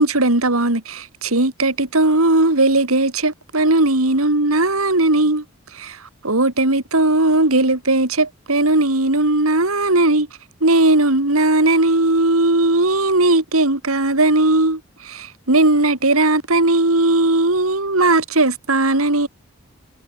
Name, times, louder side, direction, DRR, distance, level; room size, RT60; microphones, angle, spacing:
voice 1, 0.0-5.4 5.7-6.0 6.2-10.3 10.6-19.3, right 2 dB, 85° right, 3.2 m, -17 dB
head